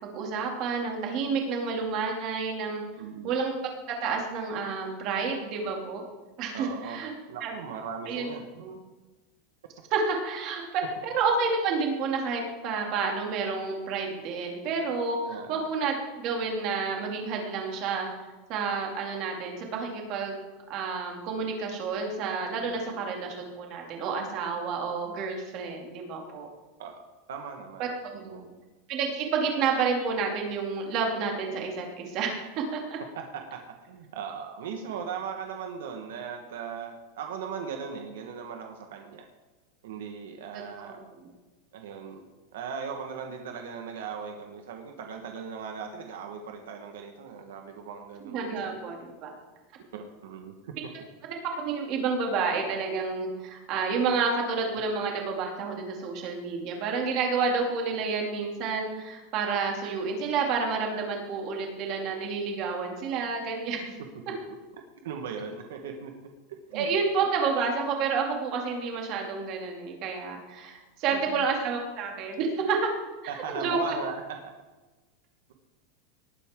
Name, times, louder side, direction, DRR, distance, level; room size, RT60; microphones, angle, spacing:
voice 1, 0.0-2.8 3.2-3.5 4.0-6.0 6.4-7.1 7.4-7.5 8.0-8.3 8.6-8.8 9.9-15.2 15.5-18.1 18.5-20.4 20.7-26.5 27.8-28.3 28.9-33.0 40.5-41.3 48.2-49.3 51.5-63.9 66.7-72.9 73.3-73.8, right 5 dB, 35° right, 1 dB, 2.6 m, -30 dB
voice 2, 3.0-3.4 6.5-7.0 7.3-8.6 15.3-15.7 22.6-23.0 26.8-26.9 27.3-27.9 28.1-28.5 33.1-33.6 33.9-39.3 39.8-41.0 41.7-42.2 42.5-48.8 49.9-50.7 64.3-64.4 65.0-66.1 66.5-66.9 71.1-71.4 73.3-74.2, right 6 dB, 80° right, 4 dB, 1.4 m, -38 dB
19.0 x 9.5 x 3.7 m, 1.2 s
supercardioid pair, 180°, 0 cm